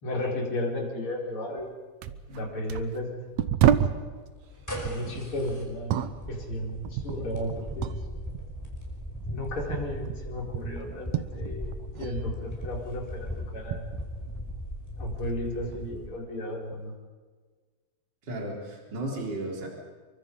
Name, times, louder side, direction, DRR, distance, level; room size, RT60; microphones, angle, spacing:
voice 1, 0.0-1.7 2.3-3.2 4.8-6.0 6.3-8.0 9.3-13.9 15.0-16.9, left 1 dB, 35° left, -2 dB, 5.4 m, -34 dB
sound 1, 1.6-1.7 2.0-4.1 4.7-8.1 8.3-12.2 12.4-14.8 15.2-15.9 16.7-16.9, right 10 dB, 75° right, 1.7 m, -31 dB
sound 2, 4.3-16.1, left 1 dB, 5° left, 4.9 m, -38 dB
voice 2, 18.3-19.7, right 1 dB, 30° right, 0 dB, 4.3 m, -34 dB
28.0 x 24.0 x 5.5 m, 1.5 s
omnidirectional pair, 4.2 m